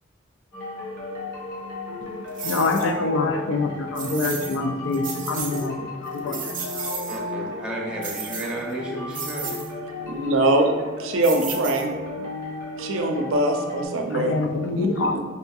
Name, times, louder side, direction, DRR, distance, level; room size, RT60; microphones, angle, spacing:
sound 1, 0.5-13.9, left 2 dB, 55° left, 1.0 m, -34 dB
voice 1, 2.4-7.1 14.1-15.2, left 3 dB, 70° left, 5 dB, 0.4 m, -26 dB
sound 2, 2.4-2.9 4.0-4.6 4.9-5.7 6.1-7.2 8.0-8.7 9.1-9.7 11.2-12.1, right 6 dB, 45° right, 0.6 m, -33 dB
voice 2, 7.1-9.6 12.1-12.3 13.9-14.3, right 1 dB, 5° right, -5 dB, 0.6 m, -33 dB
voice 3, 10.1-10.7 11.0-11.9 12.8-14.3 14.8-15.2, right 1 dB, 90° right, 4 dB, 0.5 m, -22 dB
5.3 x 2.6 x 2.3 m, 1.3 s
head